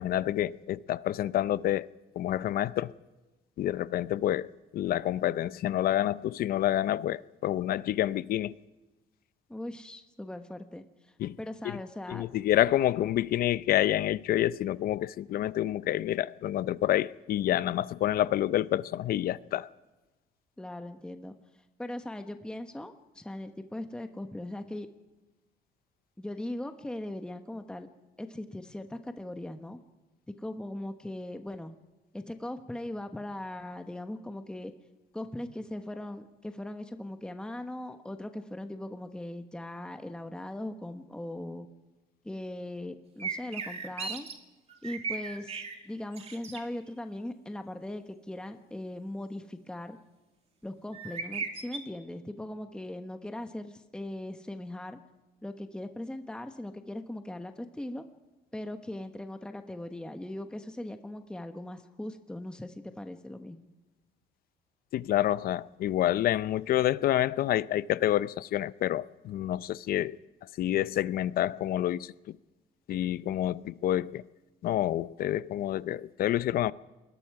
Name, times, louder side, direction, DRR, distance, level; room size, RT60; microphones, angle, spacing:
voice 1, 0.0-1.9 2.2-2.9 3.6-4.5 4.7-8.6 11.2-11.4 11.6-11.8 12.1-19.7 64.9-70.2 70.6-72.4 72.9-74.2 74.6-76.7, left 13 dB, 60° left, 0.6 m, -28 dB
voice 2, 9.5-12.3 20.6-21.3 21.8-24.9 26.2-27.9 28.2-29.8 30.3-31.8 32.1-34.7 35.1-41.7 42.2-44.3 44.8-50.0 50.6-55.0 55.4-58.0 58.5-63.7, left 1 dB, 5° left, 1.1 m, -39 dB
sound 1, 43.2-44.3 44.7-45.8 46.1-46.6 50.9-51.8, right 5 dB, 35° right, 2.3 m, -36 dB
27.5 x 21.0 x 4.8 m
cardioid pair, 110°, 17 cm